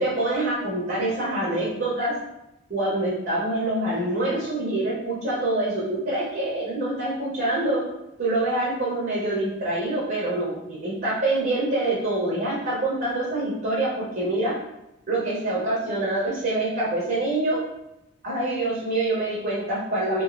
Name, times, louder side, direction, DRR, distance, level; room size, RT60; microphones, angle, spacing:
voice 1, 0.0-2.1 2.7-7.8 8.2-14.5 15.1-17.6 18.2-20.2, right 2 dB, 45° right, -7 dB, 0.7 m, -25 dB
2.9 x 2.3 x 2.5 m, 0.89 s
head